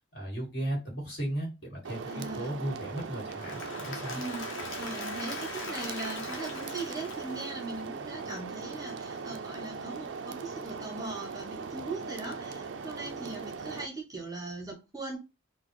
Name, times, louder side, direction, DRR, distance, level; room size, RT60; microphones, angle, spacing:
voice 1, 0.1-4.2, right 1 dB, 55° left, -2 dB, 1.8 m, -36 dB
sound 1, 1.8-13.9, right 5 dB, 65° right, 0.4 m, -39 dB
voice 2, 2.1-2.5 4.1-4.5 4.8-15.2, right 2 dB, 20° right, 2 dB, 0.7 m, -40 dB
Applause / Crowd, 3.2-8.1, left 3 dB, 75° left, 0.9 m, -41 dB
4.0 x 2.1 x 3.0 m, 0.26 s
head